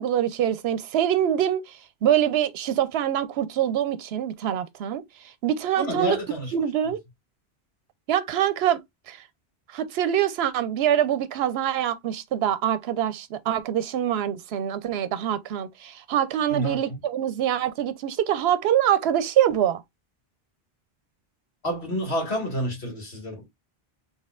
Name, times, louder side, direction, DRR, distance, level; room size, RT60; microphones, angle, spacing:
voice 1, 0.0-6.2 6.5-7.0 8.1-9.2 9.7-19.8, right 10 dB, 80° right, 0.8 m, -25 dB
voice 2, 5.8-6.5 16.5-17.0 21.6-23.4, equal, 85° left, 2.3 m, -29 dB
4.2 x 3.6 x 2.4 m
omnidirectional pair, 1.1 m